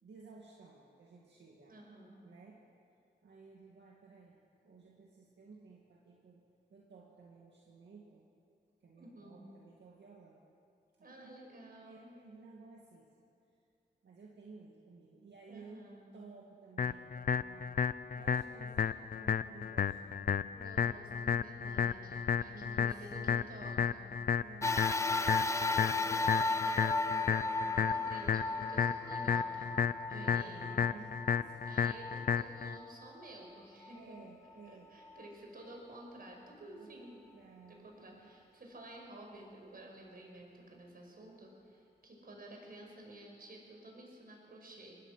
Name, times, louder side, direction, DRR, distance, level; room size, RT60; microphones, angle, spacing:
voice 1, 0.0-1.8 2.2-2.6 3.2-6.4 6.7-8.3 8.8-10.4 11.0-13.1 14.0-15.9 16.1-17.8 18.1-20.4 22.5-23.7 24.4-26.3 30.1-31.6 33.9-35.0 36.6-38.3, right 4 dB, 85° right, -2 dB, 2.2 m, -56 dB
voice 2, 1.7-2.2 9.0-9.5 11.0-12.2 15.5-16.1 20.5-24.1 25.7-29.7 30.1-30.7 31.7-34.2 34.7-37.3 37.7-45.0, right 1 dB, 55° right, 0 dB, 5.4 m, -52 dB
sound 1, 16.8-32.8, left 7 dB, 55° left, 0.5 m, -33 dB
sound 2, 24.6-33.2 33.8-33.9 35.0-35.1, left 3 dB, 15° left, 0.6 m, -35 dB
25.0 x 19.0 x 5.9 m, 2.5 s
wide cardioid pair, 90°, 18 cm